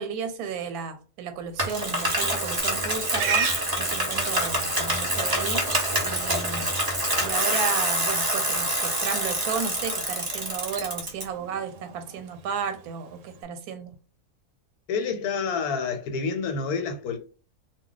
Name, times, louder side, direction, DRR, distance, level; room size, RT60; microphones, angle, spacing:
voice 1, 0.0-3.5 3.8-5.6 6.0-6.7 7.2-13.9, right 6 dB, 90° right, 1.1 m, -33 dB
Bicycle, 1.6-11.2, right 1 dB, 40° right, 0.3 m, -26 dB
Livestock farm animals working animals, 2.6-13.4, right 6 dB, 70° right, 0.8 m, -38 dB
voice 2, 14.9-17.2, left 5 dB, 85° left, 1.2 m, -28 dB
2.3 x 2.2 x 3.8 m
omnidirectional pair, 1.6 m